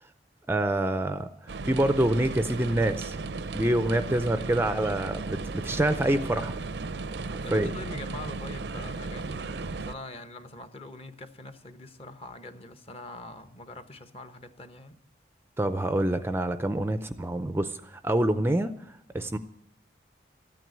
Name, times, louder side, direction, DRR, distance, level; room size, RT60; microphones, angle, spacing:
voice 1, 0.5-3.2 3.5-6.5 7.5-7.7 15.6-19.4, right 1 dB, 15° right, 0.5 m, -26 dB
sound 1, 1.5-9.9, right 3 dB, 75° right, 0.6 m, -35 dB
voice 2, 7.4-15.0, left 2 dB, 35° left, 1.0 m, -43 dB
14.0 x 9.3 x 9.2 m
head